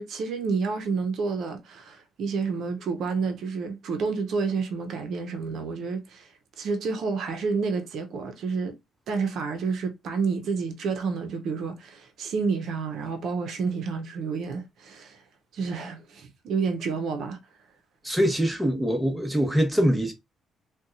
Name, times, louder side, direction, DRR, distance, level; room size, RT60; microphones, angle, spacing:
voice 1, 0.0-6.3 6.6-8.8 9.1-15.2 15.5-17.4, right 5 dB, 70° right, 0.6 m, -29 dB
voice 2, 18.0-20.1, equal, 5° right, 1.0 m, -23 dB
4.0 x 2.2 x 2.5 m
cardioid pair, 90°, 0 cm